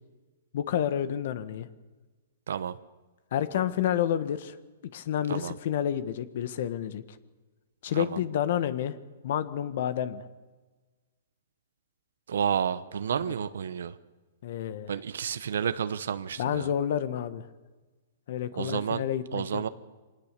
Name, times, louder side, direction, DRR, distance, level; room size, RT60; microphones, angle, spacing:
voice 1, 0.5-1.7 3.3-4.5 4.9-7.0 7.8-9.0 9.2-10.2 14.4-14.9 16.4-17.5 18.3-19.6, left 10 dB, 55° left, 13 dB, 1.3 m, -29 dB
voice 2, 12.3-13.9 14.9-16.7 18.6-19.0 19.3-19.7, right 8 dB, 80° right, 13 dB, 0.9 m, -30 dB
24.0 x 19.0 x 6.8 m, 1.3 s
hypercardioid pair, 155°, 0 cm